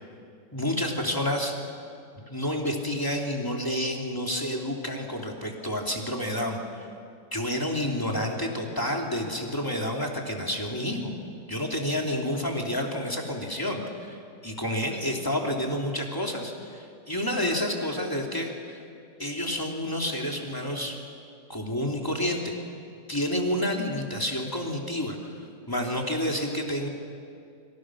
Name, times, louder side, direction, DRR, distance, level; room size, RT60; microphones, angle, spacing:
voice 1, 0.5-1.5 2.3-6.9 7.3-11.1 11.5-14.2 14.4-18.8 19.2-21.0 21.5-22.6 23.1-25.3 25.7-26.9, left 1 dB, 10° left, 0 dB, 2.9 m, -29 dB
29.5 x 26.0 x 6.3 m, 2.4 s
omnidirectional pair, 2.1 m